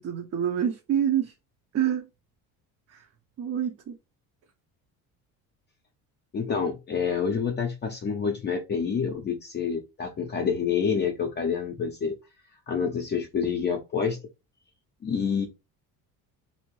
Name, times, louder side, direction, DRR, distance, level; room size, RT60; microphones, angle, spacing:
voice 1, 0.0-1.3 1.7-2.1 2.9-3.1 3.4-4.0, right 9 dB, 45° right, 0.7 m, -27 dB
voice 2, 6.3-12.2 12.7-14.2 15.0-15.5, left 6 dB, 30° left, 0.6 m, -28 dB
2.8 x 2.5 x 3.0 m
cardioid pair, 110°, 35 cm